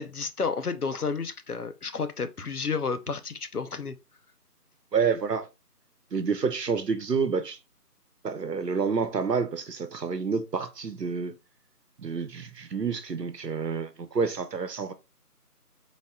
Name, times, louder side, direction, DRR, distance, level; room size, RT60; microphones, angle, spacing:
voice 1, 0.0-4.0, left 5 dB, 65° left, 0.7 m, -31 dB
voice 2, 4.9-5.5 6.1-7.6 8.2-11.3 12.0-14.9, right 5 dB, 80° right, 0.9 m, -28 dB
4.0 x 2.3 x 3.6 m
figure-of-eight pair, 180°, 48 cm